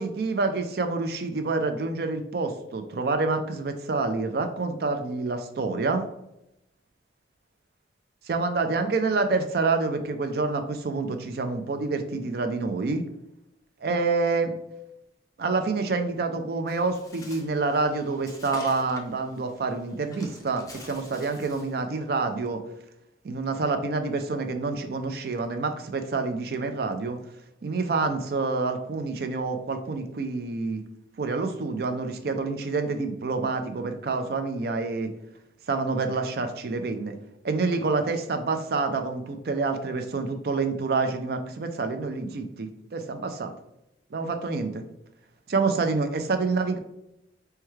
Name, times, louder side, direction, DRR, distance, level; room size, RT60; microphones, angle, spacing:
voice 1, 0.0-6.1 8.3-13.0 13.8-14.5 15.4-22.6 23.2-27.2 27.6-30.8 31.2-35.1 35.7-37.1 37.4-43.5 44.1-44.8 45.5-46.8, right 3 dB, 55° right, 7 dB, 0.4 m, -27 dB
Bird, 16.7-21.8, left 2 dB, 20° left, 0.5 m, -47 dB
4.4 x 2.3 x 3.1 m, 0.85 s
head